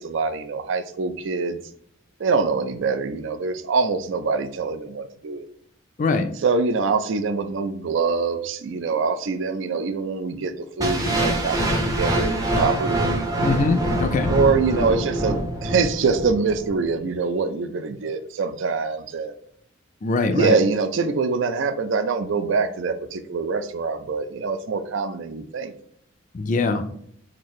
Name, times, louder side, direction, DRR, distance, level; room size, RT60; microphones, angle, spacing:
voice 1, 0.0-1.6 2.2-5.5 6.4-13.3 14.3-15.4 15.6-19.3 20.3-25.7, right 4 dB, 65° right, 9 dB, 0.4 m, -24 dB
sound 1, 10.8-16.8, right 1 dB, 20° right, 0.6 m, -24 dB
voice 2, 13.4-14.3 20.0-20.5 26.3-26.8, left 3 dB, 40° left, 7 dB, 0.4 m, -22 dB
4.0 x 2.6 x 3.1 m, 0.67 s
head